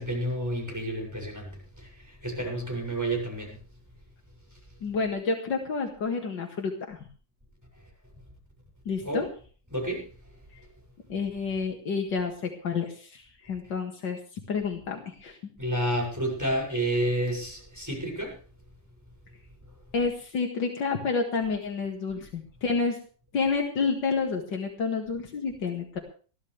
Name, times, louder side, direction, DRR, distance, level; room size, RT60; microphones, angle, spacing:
voice 1, 0.0-3.6 9.0-9.2 9.7-10.1 15.6-18.4, right 1 dB, 10° right, -1 dB, 6.9 m, -30 dB
voice 2, 4.8-7.0 8.9-9.3 11.1-14.2 14.5-15.4 19.9-23.0 23.3-26.0, left 4 dB, 85° left, 2 dB, 2.6 m, -29 dB
21.5 x 14.0 x 3.4 m, 0.39 s
omnidirectional pair, 1.9 m